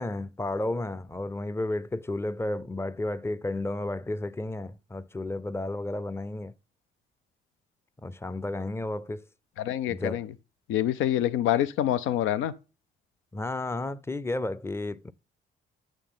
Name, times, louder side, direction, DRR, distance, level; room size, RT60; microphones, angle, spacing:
voice 1, 0.0-6.5 8.0-9.2 9.9-10.2 13.3-15.1, left 2 dB, 10° left, 0.5 m, -32 dB
voice 2, 9.6-10.3 10.7-12.5, left 12 dB, 90° left, 0.6 m, -26 dB
9.0 x 6.4 x 3.8 m
cardioid pair, 90°, 20 cm